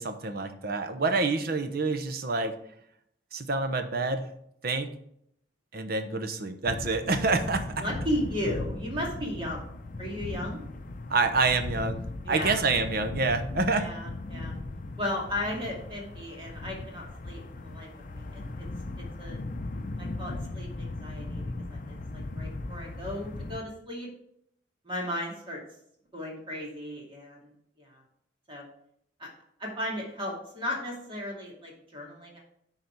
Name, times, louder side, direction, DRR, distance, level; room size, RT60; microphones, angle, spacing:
voice 1, 0.0-2.6 3.3-4.3 4.6-4.9 5.7-7.8 11.1-13.9, right 3 dB, 55° right, 8 dB, 0.8 m, -27 dB
sound 1, 6.6-23.6, left 2 dB, 45° left, 0.6 m, -38 dB
voice 2, 7.8-9.7 10.0-10.6 12.2-12.6 13.8-14.5 15.0-18.7 19.2-19.4 20.0-21.4 21.7-24.1 24.8-25.6 26.1-27.5 27.8-28.0 28.5-28.6 29.2-29.3 29.6-32.4, left 1 dB, 30° right, -2 dB, 2.4 m, -35 dB
10.5 x 4.1 x 4.6 m, 0.72 s
head